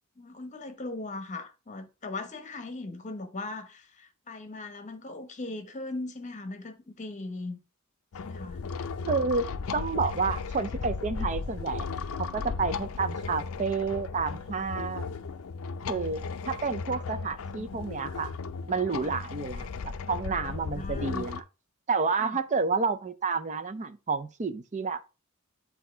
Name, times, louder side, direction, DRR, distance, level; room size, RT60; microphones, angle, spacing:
voice 1, 0.2-7.6 8.2-8.6 20.8-21.2 22.2-22.4, left 2 dB, 35° left, 0.9 m, -39 dB
sound 1, 8.1-21.4, left 4 dB, 70° left, 0.5 m, -36 dB
voice 2, 9.1-11.9 12.2-15.1 15.9-18.3 18.7-21.4 21.9-25.0, right 4 dB, 35° right, 0.5 m, -30 dB
8.2 x 2.8 x 4.3 m
head